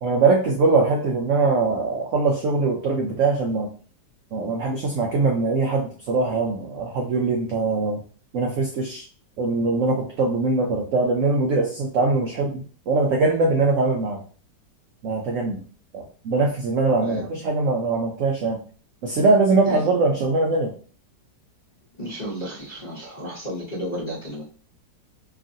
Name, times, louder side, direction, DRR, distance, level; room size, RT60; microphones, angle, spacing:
voice 1, 0.0-3.7 4.3-8.0 8.3-9.0 9.4-14.2 15.0-15.6 15.9-18.6 19.0-20.7, right 3 dB, 85° right, 0 dB, 0.6 m, -22 dB
voice 2, 17.0-17.4 19.6-20.3 22.0-24.4, equal, 40° left, -9 dB, 0.6 m, -33 dB
2.9 x 2.4 x 2.6 m, 0.41 s
omnidirectional pair, 1.9 m